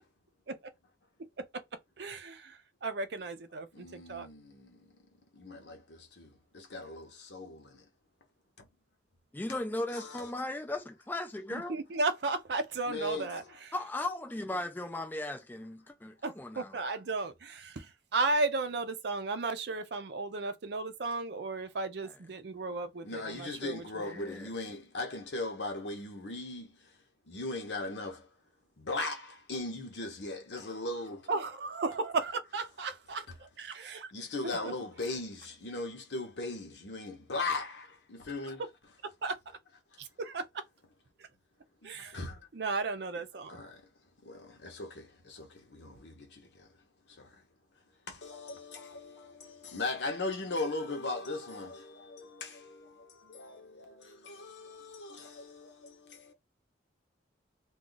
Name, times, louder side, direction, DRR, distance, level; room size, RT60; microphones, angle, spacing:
voice 1, 2.0-4.3 11.5-13.7 16.2-24.1 31.3-34.1 34.4-34.7 39.2-39.4 40.0-40.4 41.8-42.2 42.5-43.6, right 3 dB, 60° right, 0.5 m, -35 dB
voice 2, 3.7-4.9 5.3-7.9 8.6-8.7 9.9-10.3 12.9-13.5 23.0-28.3 28.8-31.3 33.8-38.6 39.9-40.0 41.8-42.5 43.5-47.5 48.1-56.3, left 2 dB, 70° left, 0.8 m, -39 dB
voice 3, 9.3-11.8 13.7-16.8 24.1-24.5, left 2 dB, 10° left, 0.4 m, -37 dB
2.3 x 2.3 x 3.8 m
head